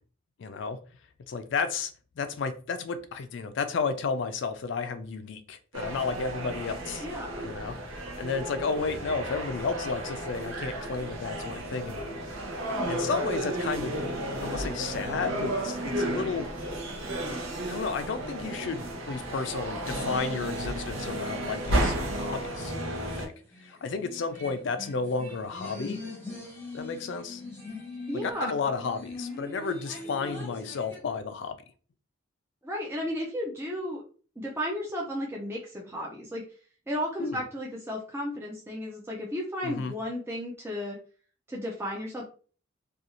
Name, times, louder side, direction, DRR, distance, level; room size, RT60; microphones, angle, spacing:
voice 1, 0.4-0.8 1.3-7.1 7.4-12.3 12.9-14.0 14.4-16.5 17.7-22.7 23.0-23.3 23.6-26.0 26.7-27.4 28.2-31.6 37.2-37.4 39.6-39.9, left 4 dB, 65° left, 11 dB, 0.4 m, -32 dB
sound 1, 5.7-23.3, right 1 dB, 85° right, 0.7 m, -33 dB
voice 2, 7.0-7.5 28.1-28.5 32.6-34.0 34.4-36.4 36.9-41.0 41.5-42.2, equal, 10° right, -3 dB, 0.4 m, -34 dB
sound 2, 21.6-31.0, left 2 dB, 10° left, 0.8 m, -42 dB
2.5 x 2.3 x 2.8 m, 0.39 s
head